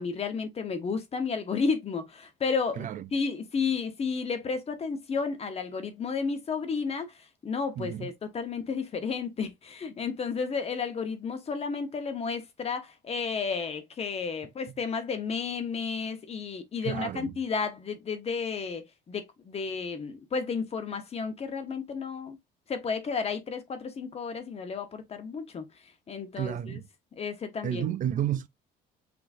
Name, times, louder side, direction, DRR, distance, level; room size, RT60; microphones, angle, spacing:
voice 1, 0.0-22.4 22.7-25.7 26.1-26.8 27.2-27.9, left 5 dB, 35° left, 1.1 m, -32 dB
voice 2, 7.8-8.1 16.8-17.3 26.4-26.9 27.6-28.5, right 10 dB, 50° right, 0.5 m, -31 dB
6.0 x 2.9 x 2.6 m
cardioid pair, 110°, 17 cm